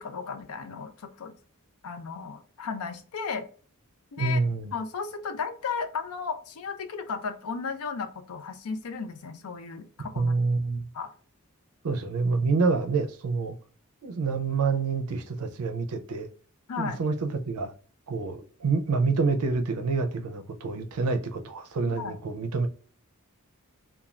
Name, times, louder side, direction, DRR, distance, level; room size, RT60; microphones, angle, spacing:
voice 1, 0.0-1.3 1.8-3.5 4.1-4.4 4.7-10.3 10.9-11.1 16.7-17.0 21.9-22.2, left 5 dB, 80° left, 0.5 m, -34 dB
voice 2, 4.2-4.7 10.2-10.9 11.8-13.6 14.0-16.3 16.8-17.7 18.1-22.7, right 4 dB, 90° right, 0.5 m, -27 dB
2.4 x 2.3 x 3.1 m
head